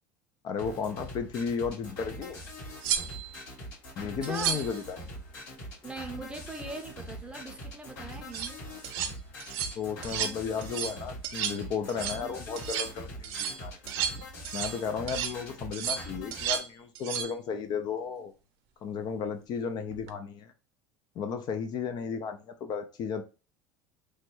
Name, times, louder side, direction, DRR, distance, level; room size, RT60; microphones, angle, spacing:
voice 1, 0.4-2.4 4.0-5.0 9.8-13.7 14.5-18.3 18.8-20.5 21.2-23.2, left 6 dB, 40° left, 0.4 m, -34 dB
sound 1, 0.6-16.6, equal, 80° left, 1.6 m, -43 dB
sound 2, 2.2-2.3 2.8-3.4 4.2-4.8 8.1-8.5 8.8-9.1 9.4-9.8 10.0-10.4 10.6-11.0 11.2-11.6 11.9-12.2 12.6-12.9 13.2-14.8 15.1-15.4 15.7-16.7 16.9-17.3 19.9-20.1, right 9 dB, 70° right, 0.5 m, -33 dB
voice 2, 4.2-4.6 5.8-8.6, right 3 dB, 10° right, 0.6 m, -40 dB
3.0 x 2.2 x 3.0 m
supercardioid pair, 130°, 10 cm